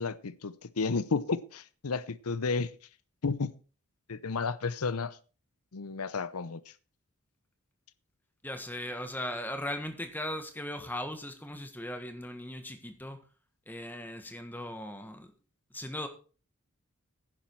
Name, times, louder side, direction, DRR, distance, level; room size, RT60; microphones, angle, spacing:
voice 1, 0.0-2.7 3.2-3.5 4.1-5.2 5.7-6.6, left 4 dB, 85° left, 0.7 m, -32 dB
voice 2, 8.4-13.2 13.7-15.3 15.7-16.1, left 1 dB, 10° left, 1.4 m, -38 dB
10.5 x 10.0 x 4.6 m
head